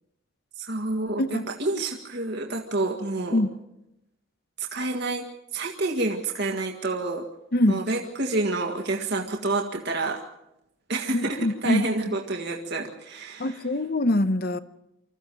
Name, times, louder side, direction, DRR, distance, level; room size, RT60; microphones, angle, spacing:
voice 1, 0.6-3.4 4.6-5.2 5.5-7.3 7.7-10.2 10.9-13.6, right 2 dB, 55° right, 1.9 m, -28 dB
voice 2, 11.1-11.9 13.4-14.6, left 1 dB, 50° left, 0.9 m, -23 dB
25.5 x 14.5 x 7.7 m
head